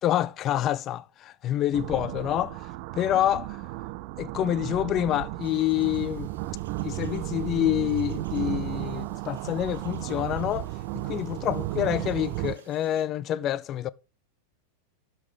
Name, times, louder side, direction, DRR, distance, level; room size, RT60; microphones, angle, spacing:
voice 1, 0.0-2.6 2.9-3.6 4.2-6.3 6.8-10.7 11.0-13.9, left 12 dB, 30° left, 0.4 m, -27 dB
sound 1, 1.7-12.5, right 18 dB, 45° right, 0.6 m, -34 dB
sound 2, 5.4-13.0, right 7 dB, 60° right, 2.2 m, -55 dB
12.0 x 5.8 x 4.9 m
figure-of-eight pair, 90°, 0 cm